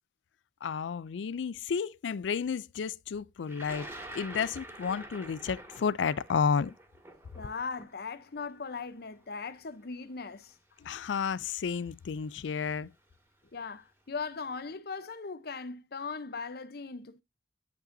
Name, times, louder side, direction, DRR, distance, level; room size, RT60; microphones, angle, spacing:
voice 1, 0.6-6.7 10.8-12.9, left 6 dB, 85° left, 0.4 m, -32 dB
Thunder, 3.5-9.5 10.4-10.5 11.6-11.9 12.2-12.7, right 1 dB, 15° right, 2.3 m, -47 dB
voice 2, 7.3-10.5 13.5-17.2, left 4 dB, 60° left, 0.7 m, -39 dB
10.5 x 5.0 x 2.6 m
head